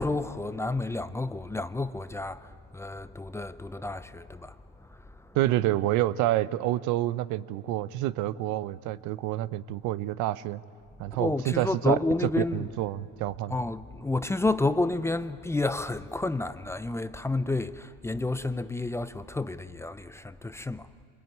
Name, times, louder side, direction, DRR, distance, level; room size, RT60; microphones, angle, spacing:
voice 1, 0.0-5.4 11.1-12.7 13.5-20.9, left 2 dB, 10° left, 0.6 m, -30 dB
voice 2, 5.3-10.6 11.0-12.0 12.4-13.5, right 15 dB, 70° right, 0.8 m, -28 dB
26.0 x 21.5 x 9.6 m
supercardioid pair, 105°, 31 cm